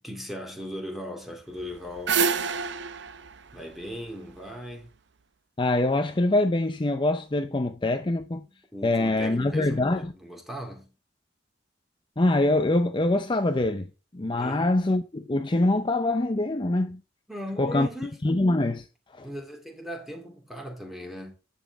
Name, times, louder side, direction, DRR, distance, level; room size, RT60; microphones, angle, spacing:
voice 1, 0.0-2.6 3.5-4.9 8.5-10.9 14.4-14.6 17.3-18.2 19.2-21.3, equal, ahead, 2.5 m, -38 dB
sound 1, 1.6-4.7, right 5 dB, 65° right, 0.7 m, -29 dB
voice 2, 5.6-8.5 8.8-10.1 12.2-13.9 14.1-17.0 17.6-17.9 18.2-18.9 19.1-19.3, left 2 dB, 25° left, 0.6 m, -24 dB
11.0 x 7.3 x 3.5 m
head